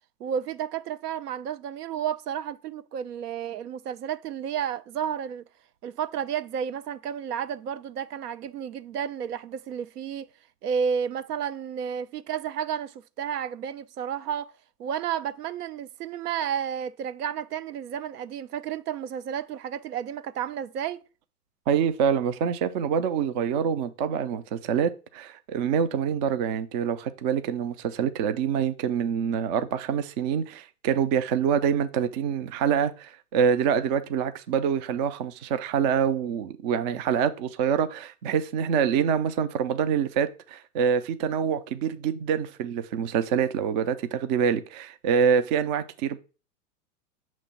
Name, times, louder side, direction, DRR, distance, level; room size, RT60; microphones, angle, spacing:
voice 1, 0.2-5.4 5.8-10.3 10.6-14.5 14.8-21.0, right 8 dB, 70° right, 0.7 m, -31 dB
voice 2, 21.7-46.2, right 7 dB, 30° right, 0.4 m, -26 dB
6.5 x 3.1 x 5.7 m
hypercardioid pair, 110°, 47 cm